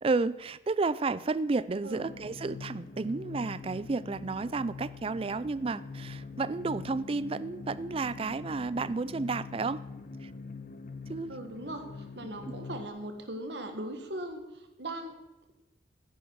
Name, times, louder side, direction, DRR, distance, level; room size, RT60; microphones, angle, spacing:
voice 1, 0.0-9.8 10.2-10.3 11.1-11.4, right 3 dB, 30° right, 17 dB, 0.3 m, -32 dB
sound 1, 1.9-12.9, left 4 dB, 45° left, 0.8 m, -44 dB
voice 2, 11.3-15.1, right 1 dB, 65° right, 6 dB, 1.7 m, -39 dB
15.0 x 10.0 x 4.7 m, 0.99 s
head